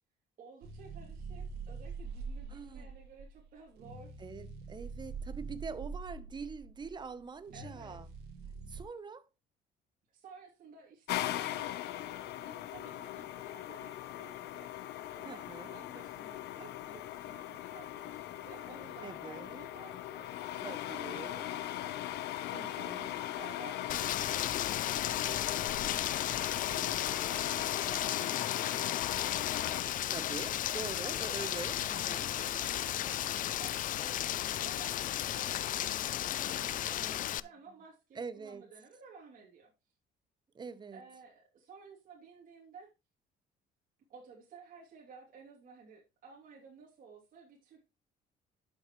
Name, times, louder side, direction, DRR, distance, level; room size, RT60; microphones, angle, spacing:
voice 1, 0.4-4.1 7.5-8.0 10.1-12.1 12.4-15.5 15.7-22.2 22.5-24.2 24.5-25.6 26.2-30.0 31.0-31.2 32.4-39.7 40.9-42.9 44.1-47.8, right 5 dB, 55° right, 3.0 m, -55 dB
sound 1, 0.6-8.8, right 4 dB, 80° right, 2.0 m, -44 dB
voice 2, 2.5-2.9 4.2-8.1 8.7-9.2 15.2-15.8 19.0-19.7 20.6-21.5 22.5-23.1 30.1-32.3 36.3-37.2 38.1-38.6 40.5-41.0, right 5 dB, 25° right, 1.0 m, -44 dB
sound 2, 11.1-29.8, left 13 dB, 80° left, 1.0 m, -39 dB
Rain, 23.9-37.4, left 12 dB, 50° left, 0.5 m, -34 dB
11.0 x 7.5 x 3.2 m
cardioid pair, 110°, 17 cm